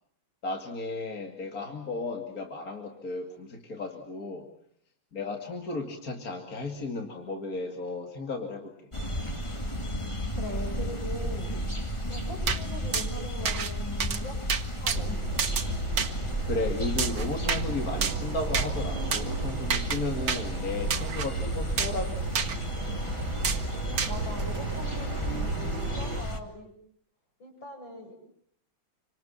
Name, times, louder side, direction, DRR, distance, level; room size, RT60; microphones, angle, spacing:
voice 1, 0.4-4.5 5.1-8.7 16.4-22.2, left 2 dB, 45° left, 3 dB, 2.9 m, -34 dB
sound 1, 8.9-26.4, equal, 15° left, 2.3 m, -33 dB
voice 2, 10.4-11.5 12.1-14.4 14.8-15.2 24.0-26.7 27.4-28.1, left 1 dB, 70° left, 2 dB, 8.3 m, -41 dB
sound 2, 12.5-12.6 12.9-13.1 13.5-13.7 14.0-14.2 14.5-15.0 15.4-15.7 16.0-16.1 17.0-17.6 18.0-18.2 18.5-18.7 19.1-19.2 19.7-20.0 20.3-20.4 20.9-21.3 21.8-22.0 22.4-22.6 23.4-23.6 24.0-24.1, right 6 dB, 65° right, 2.2 m, -29 dB
sound 3, 14.9-26.2, right 4 dB, 85° right, 2.6 m, -36 dB
28.5 x 25.5 x 7.5 m, 0.70 s
omnidirectional pair, 2.1 m